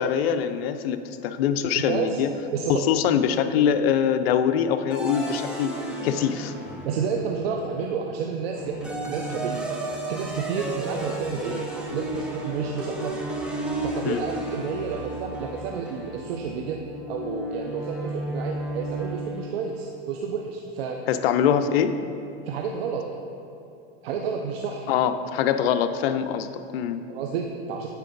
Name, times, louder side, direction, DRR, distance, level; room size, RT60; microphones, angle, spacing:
voice 1, 0.0-2.3 2.7-5.8 6.0-6.5 14.0-14.2 21.1-22.0 24.9-27.0, left 8 dB, 70° left, 10 dB, 0.5 m, -23 dB
voice 2, 1.7-2.2 2.5-2.8 6.8-9.7 10.1-11.6 11.9-13.2 13.8-16.8 17.1-21.0 22.5-23.1 24.0-24.8 27.1-27.9, right 6 dB, 75° right, 2 dB, 0.7 m, -30 dB
sound 1, 4.9-7.5 8.6-19.7, right 1 dB, 5° right, 0.8 m, -33 dB
8.9 x 4.6 x 3.9 m, 2.8 s
supercardioid pair, 125°, 31 cm